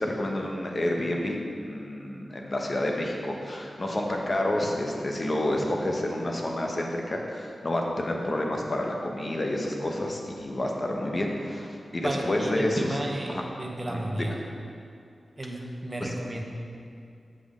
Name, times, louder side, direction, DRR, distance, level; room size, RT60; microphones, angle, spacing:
voice 1, 0.0-13.0 13.3-13.4 13.9-14.3 16.0-16.1, left 1 dB, 35° left, 0 dB, 1.0 m, -29 dB
voice 2, 11.9-14.4 15.4-16.4, right 1 dB, 20° right, 0 dB, 0.9 m, -33 dB
7.5 x 6.0 x 4.9 m, 2.4 s
wide cardioid pair, 125°, 0 cm